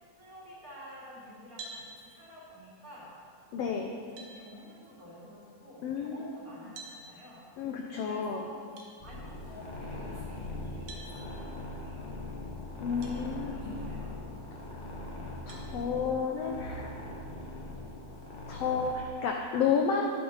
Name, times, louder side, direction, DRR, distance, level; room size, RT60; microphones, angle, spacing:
voice 1, 0.2-3.1 4.1-7.5 7.9-8.7 9.0-12.2 12.9-14.1, equal, 30° right, -8 dB, 2.7 m, -50 dB
sound 1, 1.6-1.8 3.5-3.6 4.2-4.4 6.7-7.0 8.8-8.9 10.9-11.1 13.0-13.2 13.8-13.9 15.5-15.7, right 3 dB, 70° right, 2.4 m, -45 dB
voice 2, 3.5-4.0 5.8-6.3 7.6-8.5 12.8-13.9 15.4-17.0 18.5-20.1, left 6 dB, 75° left, 2 dB, 1.5 m, -31 dB
sound 2, 9.0-19.0, left 2 dB, 45° left, 0.6 m, -41 dB
11.0 x 9.5 x 4.0 m, 2.1 s
omnidirectional pair, 3.5 m